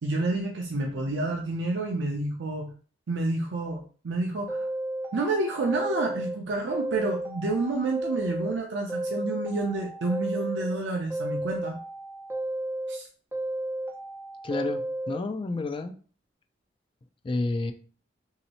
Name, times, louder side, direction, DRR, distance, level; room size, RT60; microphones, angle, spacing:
voice 1, 0.0-2.7 3.1-4.7 5.1-11.7 12.9-13.1, right 2 dB, 70° right, 1 dB, 0.5 m, -29 dB
sound 1, 4.5-6.4 6.7-8.6 8.9-10.8 11.1-13.0 13.3-15.2, right 1 dB, 10° right, 0.7 m, -33 dB
voice 2, 14.4-15.9 17.2-17.7, left 3 dB, 30° left, 7 dB, 0.3 m, -30 dB
3.0 x 2.8 x 2.8 m, 0.41 s
head